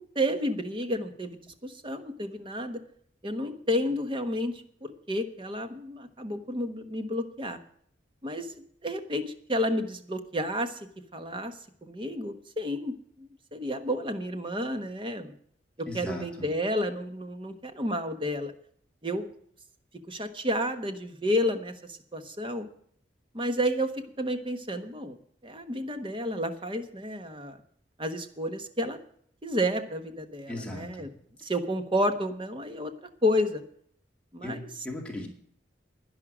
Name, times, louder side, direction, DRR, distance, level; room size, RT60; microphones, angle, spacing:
voice 1, 0.0-2.8 3.2-7.6 8.2-10.8 11.1-11.5 11.8-15.3 15.8-18.5 19.0-19.3 20.1-22.7 23.3-25.2 25.4-27.6 28.0-29.0 29.4-31.1 31.4-32.9 33.2-33.6 34.3-34.7, equal, 30° right, 1.2 m, -31 dB
voice 2, 15.9-16.5 30.5-31.1 34.4-35.3, left 1 dB, 5° left, 2.3 m, -38 dB
11.0 x 10.5 x 6.1 m
head